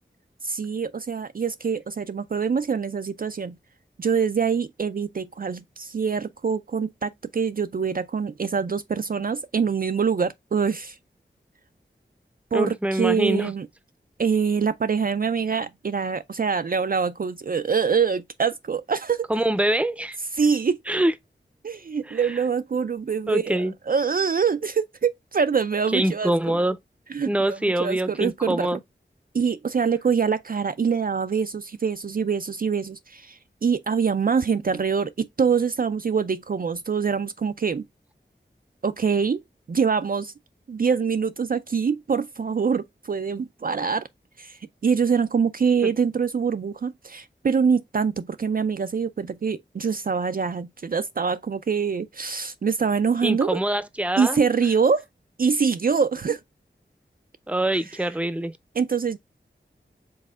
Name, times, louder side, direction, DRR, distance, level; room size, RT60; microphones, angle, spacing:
voice 1, 0.4-3.6 4.0-11.0 12.5-13.7 14.2-19.3 20.3-20.8 21.6-26.6 27.1-28.8 29.3-37.9 38.8-39.4 39.7-40.3 40.7-44.1 44.4-53.6 54.2-55.0 55.4-56.4 58.8-59.2, right 6 dB, 50° right, 0.4 m, -24 dB
voice 2, 12.5-13.5 19.3-20.2 20.9-21.1 22.1-22.3 23.3-23.7 25.9-26.8 27.3-28.8 45.8-45.9 53.2-54.4 57.5-58.5, right 1 dB, 5° right, 0.6 m, -24 dB
5.4 x 3.6 x 2.3 m
wide cardioid pair, 50°, 19 cm